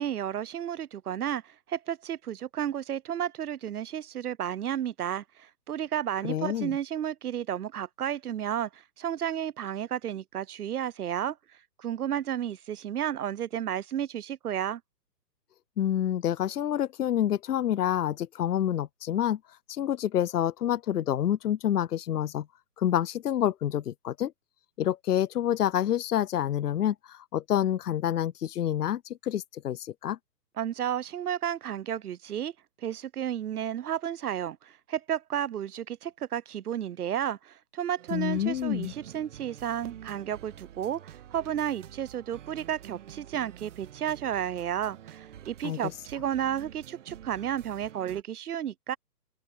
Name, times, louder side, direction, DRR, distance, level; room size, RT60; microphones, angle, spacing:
voice 1, 0.0-11.4 11.8-14.8 30.6-32.5 32.8-49.0, right 10 dB, 60° right, 0.9 m, -32 dB
voice 2, 6.2-6.8 15.8-19.4 19.7-22.5 22.8-24.3 24.8-30.2 38.1-38.9 45.6-45.8, left 11 dB, 65° left, 0.8 m, -28 dB
sound 1, 38.0-48.2, right 10 dB, 45° right, 2.7 m, -48 dB
open air
hypercardioid pair, 155°, 50 cm